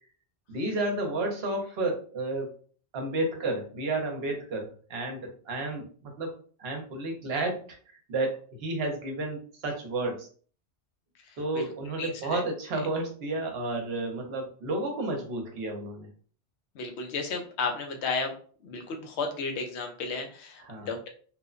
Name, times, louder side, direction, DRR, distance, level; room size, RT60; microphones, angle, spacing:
voice 1, 0.5-2.5 2.9-6.3 6.6-10.3 11.4-16.1 20.7-20.9, right 2 dB, 65° right, 2 dB, 0.9 m, -31 dB
voice 2, 11.2-11.7 12.0-12.4 16.7-18.3 18.6-21.1, left 4 dB, 80° left, 4 dB, 0.9 m, -33 dB
3.0 x 2.0 x 2.4 m, 0.43 s
omnidirectional pair, 1.1 m